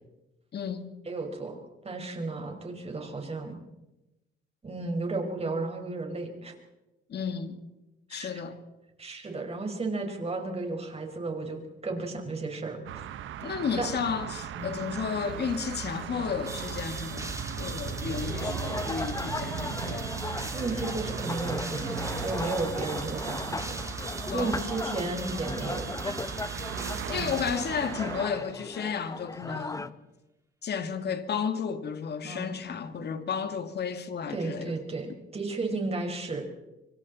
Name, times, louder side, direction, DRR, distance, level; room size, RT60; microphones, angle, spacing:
voice 1, 0.5-0.9 7.1-7.6 8.1-8.6 13.4-20.1 24.3-24.5 26.8-29.9 30.6-34.7, left 6 dB, 55° left, 2.3 m, -33 dB
voice 2, 1.0-1.6 1.8-3.6 4.6-6.5 8.1-8.4 9.0-13.1 13.5-13.9 14.6-14.8 20.5-21.9 22.2-26.2 32.2-32.6 34.3-36.4, right 3 dB, 30° right, 5.3 m, -34 dB
sound 1, 12.9-28.3, right 10 dB, 80° right, 1.3 m, -38 dB
sound 2, 16.5-28.4, right 2 dB, 15° right, 2.9 m, -39 dB
sound 3, 18.1-29.9, left 3 dB, 15° left, 1.0 m, -37 dB
26.0 x 25.0 x 4.3 m
cardioid pair, 90°, 20 cm